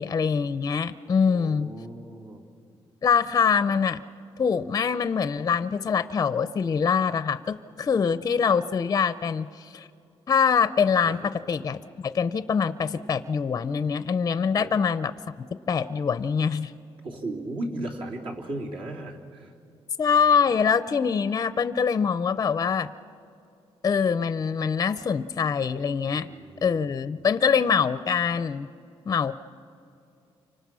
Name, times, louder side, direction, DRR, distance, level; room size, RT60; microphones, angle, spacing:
voice 1, 0.0-1.7 3.0-4.0 4.4-9.9 10.3-15.1 15.7-16.7 20.0-22.9 23.8-26.3 26.6-28.7 29.1-29.3, left 6 dB, 35° left, 13 dB, 0.6 m, -24 dB
voice 2, 1.3-2.4 11.0-11.3 14.6-14.7 17.0-19.5 26.1-26.9, right 1 dB, 60° right, -1 dB, 3.5 m, -36 dB
29.0 x 25.5 x 6.2 m, 2.6 s
cardioid pair, 135°, 10 cm